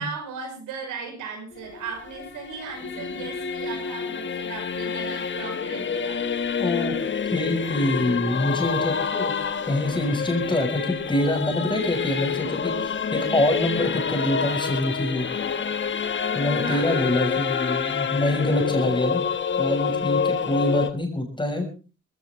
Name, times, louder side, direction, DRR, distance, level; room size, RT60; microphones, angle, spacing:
voice 1, 0.0-6.2 16.6-17.0, right 5 dB, 85° right, 5 dB, 5.6 m, -36 dB
Singing / Musical instrument, 1.5-20.9, left 6 dB, 40° left, 1.5 m, -27 dB
voice 2, 6.6-6.9 7.3-9.3 9.7-15.3 16.3-19.2 19.6-21.7, left 1 dB, 15° left, 3 dB, 6.4 m, -25 dB
20.5 x 16.5 x 3.8 m, 0.34 s
cardioid pair, 90°, 30 cm